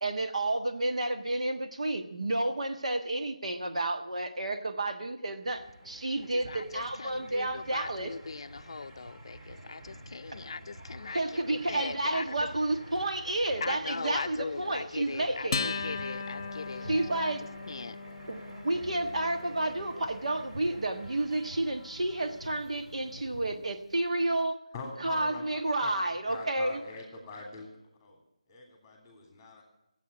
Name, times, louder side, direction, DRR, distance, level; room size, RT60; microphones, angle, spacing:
voice 1, 0.0-8.1 11.1-15.7 16.9-17.4 18.3-24.6 25.0-26.8, right 2 dB, 70° right, 6 dB, 1.4 m, -31 dB
sound 1, 5.2-23.7, equal, 15° right, 1.0 m, -53 dB
sound 2, 5.5-23.6, right 1 dB, 40° right, 2.4 m, -50 dB
voice 2, 6.3-11.4 11.7-12.5 13.6-17.3 17.7-18.0, left 4 dB, 50° left, 12 dB, 0.5 m, -40 dB
Acoustic guitar, 15.5-22.3, left 4 dB, 30° left, 1.1 m, -39 dB
voice 3, 24.7-27.7 28.0-28.2 28.5-29.6, left 3 dB, 10° left, 1 dB, 3.1 m, -44 dB
13.0 x 8.3 x 9.8 m, 0.84 s
figure-of-eight pair, 165°, 4 cm